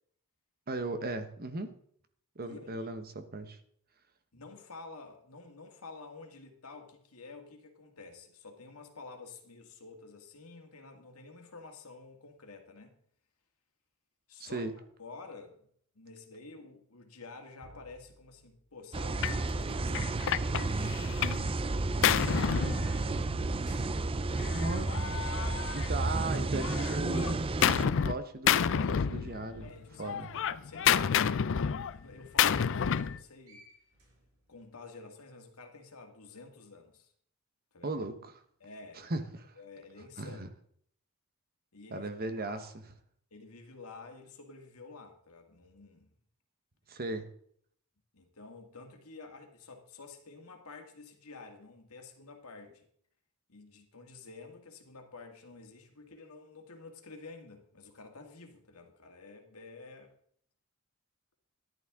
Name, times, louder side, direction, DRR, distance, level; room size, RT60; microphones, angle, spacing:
voice 1, 0.7-1.7 2.3-3.6 14.4-14.7 24.5-24.9 25.7-29.7 30.0-30.3 37.8-38.4 38.9-39.5 40.2-40.5 41.9-42.6 46.9-47.3, right 2 dB, 45° right, 1.1 m, -37 dB
voice 2, 2.4-3.0 4.3-13.0 14.3-21.9 29.6-30.2 30.5-33.7 34.5-37.1 37.7-37.9 38.6-39.1 39.6-40.5 41.7-42.7 43.3-46.1 48.1-52.9 53.5-60.1, left 3 dB, 75° left, 2.0 m, -50 dB
sound 1, 17.6-18.7 19.8-20.9 22.7-26.3 27.1-27.2 30.5-31.8 33.1-33.2 33.5-34.7, equal, 75° right, 5.1 m, -54 dB
sound 2, 18.9-27.8, right 2 dB, 25° right, 0.5 m, -32 dB
Gunshot gunfire, 19.2-19.4 19.9-21.5 21.7-23.4 24.4-26.2 26.6-28.2 28.5-29.7 30.0-33.2, left 8 dB, 60° left, 0.5 m, -29 dB
13.5 x 11.0 x 3.7 m
head